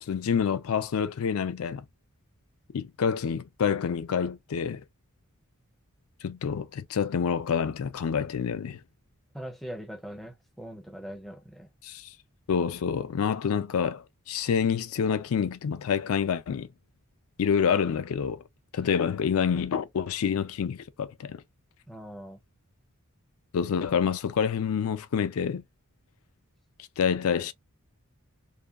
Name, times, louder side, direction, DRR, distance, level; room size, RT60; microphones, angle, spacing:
voice 1, 0.0-1.8 2.7-4.8 6.2-8.8 11.8-12.1 12.5-16.7 17.4-18.4 18.7-21.4 23.5-25.6 27.0-27.5, left 7 dB, 75° left, 0.4 m, -27 dB
voice 2, 9.3-11.7 18.8-18.9 21.9-22.4, equal, ahead, 0.4 m, -41 dB
2.7 x 2.2 x 2.3 m
head